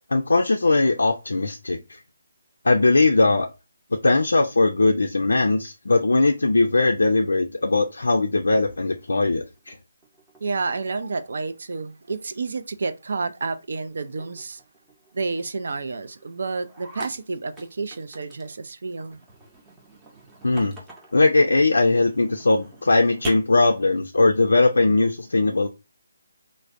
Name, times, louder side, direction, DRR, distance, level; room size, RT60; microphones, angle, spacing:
voice 1, 0.1-2.0 2.6-3.5 4.0-9.8 20.4-20.8 21.1-25.7, left 3 dB, 70° left, 0.3 m, -20 dB
sound 1, 8.3-9.8 10.0-11.4 11.7-12.3 12.6-12.9 13.2-13.3 13.6-13.7 14.0-18.6 19.0-21.2 21.8-23.3, right 2 dB, 10° right, 0.7 m, -45 dB
voice 2, 10.4-14.6 15.1-19.2, right 4 dB, 60° right, 0.4 m, -30 dB
3.2 x 2.1 x 2.5 m
figure-of-eight pair, 145°, 0 cm